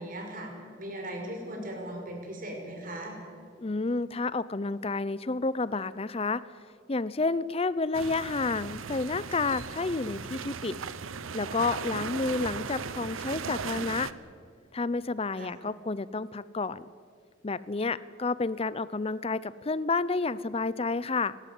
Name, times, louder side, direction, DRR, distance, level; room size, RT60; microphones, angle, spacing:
voice 1, 0.0-3.2 15.4-15.6, right 1 dB, 45° right, 2 dB, 5.1 m, -38 dB
voice 2, 3.6-6.4 6.9-10.8 11.3-14.1 14.7-16.8 17.4-21.4, left 3 dB, 30° left, 18 dB, 0.6 m, -30 dB
sound 1, 7.9-14.1, right 5 dB, 90° right, 0.9 m, -37 dB
29.5 x 12.5 x 9.4 m, 2.1 s
head